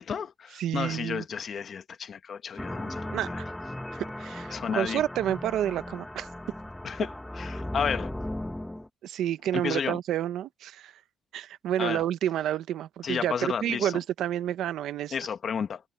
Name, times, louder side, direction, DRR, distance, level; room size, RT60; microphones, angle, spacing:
voice 1, 0.0-3.4 4.5-5.0 6.8-8.1 9.5-10.0 11.8-12.0 13.0-14.0 15.1-15.8, left 7 dB, 45° left, 1.4 m, -32 dB
voice 2, 0.6-1.2 3.1-3.3 3.9-6.3 9.0-10.9 11.3-15.1, right 11 dB, 75° right, 0.8 m, -29 dB
sound 1, 2.6-8.9, left 1 dB, 5° left, 0.9 m, -37 dB
cardioid pair, 130°, 0 cm